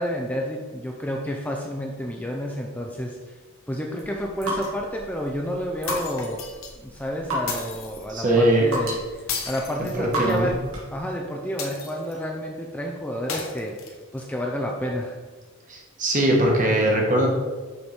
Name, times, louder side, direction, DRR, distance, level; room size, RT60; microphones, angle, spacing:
voice 1, 0.0-3.4 3.7-6.4 6.8-10.6 10.9-15.2, equal, 5° left, 0 dB, 0.4 m, -30 dB
sound 1, 4.0-11.0, equal, 85° right, 1.8 m, -34 dB
sound 2, 5.9-6.7 7.5-8.1 9.3-10.5 11.6-12.2 13.3-14.2, left 5 dB, 70° left, 1.0 m, -34 dB
voice 2, 8.1-8.6 9.9-10.5 15.7-17.3, right 1 dB, 35° right, -1 dB, 1.3 m, -21 dB
6.4 x 3.6 x 4.4 m, 1.4 s
head